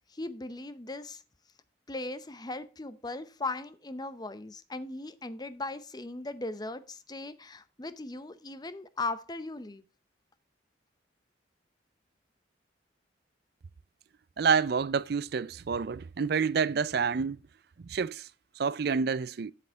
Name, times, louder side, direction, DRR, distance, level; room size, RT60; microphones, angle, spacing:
voice 1, 0.1-1.2 1.9-9.8, left 2 dB, 20° left, 0.7 m, -38 dB
voice 2, 14.4-17.4 17.9-18.3 18.6-19.5, right 5 dB, 55° right, 0.4 m, -28 dB
7.9 x 7.7 x 4.6 m
head